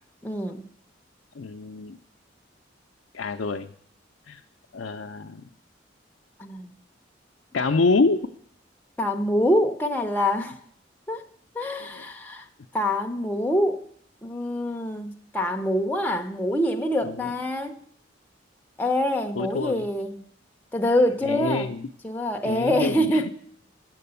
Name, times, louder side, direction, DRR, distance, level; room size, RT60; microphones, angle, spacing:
voice 1, 0.2-0.6 6.4-6.7 9.0-10.5 11.1-11.2 11.5-12.4 12.7-13.8 14.2-17.8 18.8-20.3 20.7-21.7 22.0-23.3, left 1 dB, 10° left, 0.6 m, -25 dB
voice 2, 1.4-2.0 3.1-3.7 4.3-4.4 4.7-5.4 7.5-8.3 11.9-12.0 17.0-17.3 19.4-19.8 21.2-21.9 22.4-23.3, left 3 dB, 70° left, 0.5 m, -26 dB
8.4 x 7.7 x 6.8 m
head